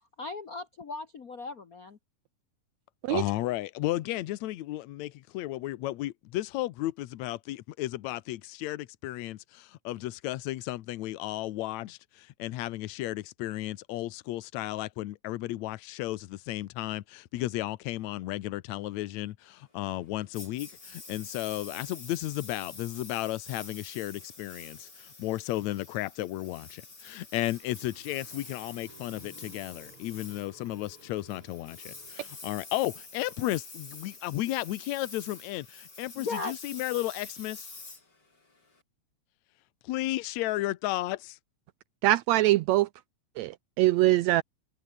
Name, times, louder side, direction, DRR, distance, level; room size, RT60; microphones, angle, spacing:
voice 1, 0.2-2.0 36.1-36.5, left 3 dB, 50° left, 1.0 m, -37 dB
voice 2, 3.1-37.7 39.8-41.4, left 16 dB, 70° left, 2.1 m, -34 dB
Engine, 20.3-38.8, left 3 dB, 30° left, 5.4 m, -47 dB
sound 1, 27.0-32.9, right 3 dB, 40° right, 6.0 m, -57 dB
voice 3, 42.0-42.9 43.4-44.4, right 16 dB, 80° right, 1.6 m, -23 dB
omnidirectional pair, 3.5 m